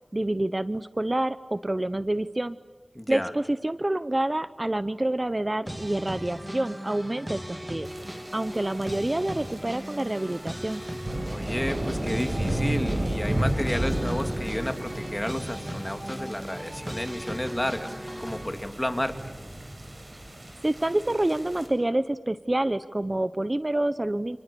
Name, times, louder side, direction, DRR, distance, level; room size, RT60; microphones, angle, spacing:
voice 1, 0.1-2.6 3.1-7.9 8.3-10.8 20.6-24.4, right 1 dB, 35° right, 13 dB, 0.8 m, -27 dB
voice 2, 2.9-3.3 11.3-19.3, left 1 dB, 15° left, 6 dB, 2.7 m, -31 dB
sound 1, 5.6-18.5, equal, 20° right, 2.8 m, -38 dB
sound 2, 7.8-21.7, right 1 dB, 55° right, 7.9 m, -33 dB
29.5 x 28.5 x 7.0 m, 1.3 s
wide cardioid pair, 50°, 0 cm